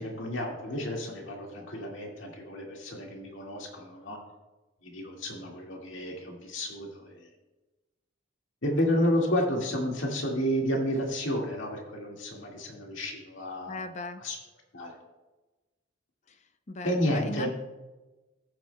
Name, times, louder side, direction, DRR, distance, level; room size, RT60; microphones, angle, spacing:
voice 1, 0.0-4.2 4.8-7.3 8.6-13.8 14.2-14.4 14.7-15.0 16.8-17.5, equal, 80° left, 0 dB, 1.9 m, -31 dB
voice 2, 13.7-14.2 16.3-16.4 16.7-17.5, left 2 dB, 35° left, 9 dB, 0.5 m, -38 dB
15.0 x 8.8 x 2.2 m, 1.1 s
head